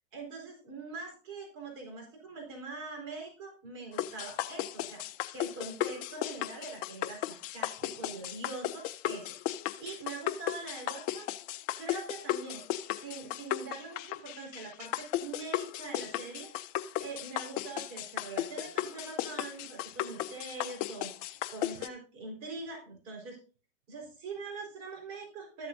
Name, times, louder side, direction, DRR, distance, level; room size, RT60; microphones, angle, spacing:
voice 1, 0.1-9.3 9.8-11.3 11.8-16.5 17.0-23.4 23.9-25.7, right 3 dB, 40° right, 1 dB, 4.5 m, -43 dB
sound 1, 4.0-21.9, left 13 dB, 25° left, 0.4 m, -35 dB
13.5 x 7.4 x 2.6 m, 0.37 s
hypercardioid pair, 120°, 37 cm